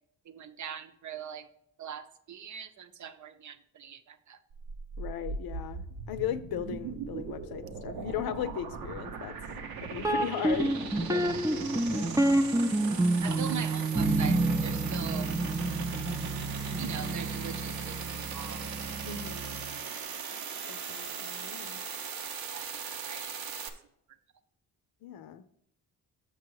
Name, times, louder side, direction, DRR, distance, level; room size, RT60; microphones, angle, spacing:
voice 1, 0.3-1.5 1.8-4.4 13.2-15.3 16.8-18.7 22.5-23.3, right 7 dB, 55° right, 10 dB, 0.7 m, -41 dB
sound 1, 4.5-23.7, right 6 dB, 90° right, 0.9 m, -39 dB
voice 2, 5.0-9.3 9.9-12.1 19.0-19.6 20.7-21.8 25.0-25.4, left 10 dB, 90° left, 12 dB, 0.6 m, -37 dB
sound 2, 10.0-19.8, right 2 dB, 10° right, 0.5 m, -29 dB
6.8 x 6.2 x 4.7 m, 0.73 s
cardioid pair, 100°, 35 cm